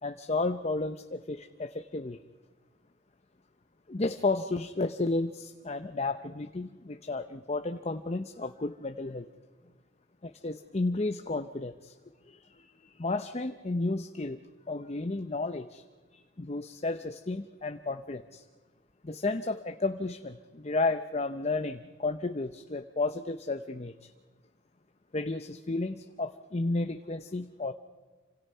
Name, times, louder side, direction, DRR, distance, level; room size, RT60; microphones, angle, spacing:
voice 1, 0.0-2.2 3.9-9.3 10.2-11.9 12.3-12.4 12.8-14.4 14.7-15.8 16.1-18.4 19.1-24.1 25.1-27.7, left 3 dB, 35° left, 8 dB, 0.7 m, -32 dB
28.0 x 26.0 x 5.6 m, 1.3 s
head